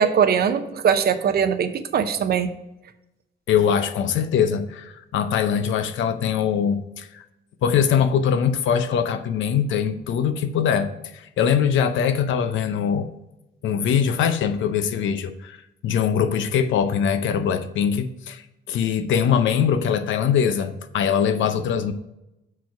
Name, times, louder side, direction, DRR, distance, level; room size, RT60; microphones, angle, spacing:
voice 1, 0.0-2.5, right 7 dB, 50° right, 10 dB, 0.6 m, -21 dB
voice 2, 3.5-7.2 7.6-13.1 13.6-18.4 18.7-21.9, left 7 dB, 75° left, 10 dB, 0.6 m, -22 dB
6.0 x 4.7 x 4.6 m, 0.90 s
cardioid pair, 90°, 20 cm